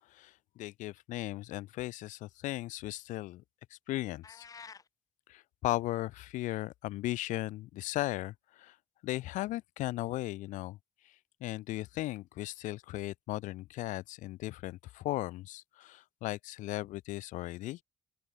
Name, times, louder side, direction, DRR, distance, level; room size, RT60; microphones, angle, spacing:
voice 1, 0.1-3.4 3.7-4.4 5.3-8.8 9.0-10.8 11.0-11.1 11.4-17.8, left 17 dB, 90° left, 0.7 m, -37 dB
sound 1, 4.2-4.9, left 5 dB, 30° left, 1.7 m, -49 dB
open air
cardioid pair, 145°, 13 cm